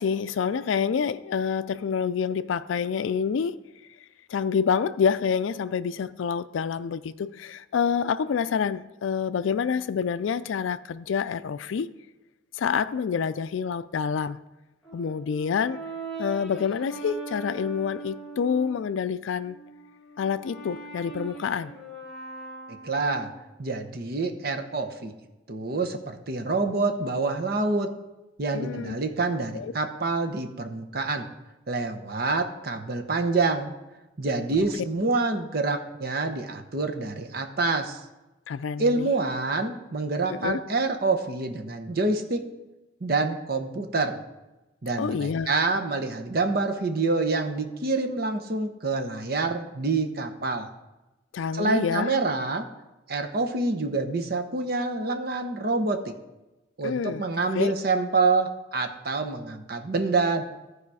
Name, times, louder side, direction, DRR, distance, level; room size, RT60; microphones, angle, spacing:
voice 1, 0.0-3.6 4.3-11.9 12.5-14.4 14.9-15.8 16.2-19.6 20.2-21.7 28.5-29.0 29.5-29.7 34.6-34.7 38.5-39.1 40.3-40.6 45.0-45.5 51.3-52.2 56.8-57.2 57.5-57.7, left 6 dB, 80° left, 0.4 m, -27 dB
Brass instrument, 14.8-18.8 19.4-23.4, right 3 dB, ahead, 1.5 m, -41 dB
voice 2, 22.7-23.3 23.6-25.1 25.5-27.9 28.4-31.3 31.7-33.7 34.2-38.0 38.8-42.4 43.0-44.2 44.8-50.7 51.5-52.7 53.1-56.1 56.8-60.4, right 3 dB, 50° right, 0.9 m, -27 dB
14.5 x 4.8 x 4.8 m
head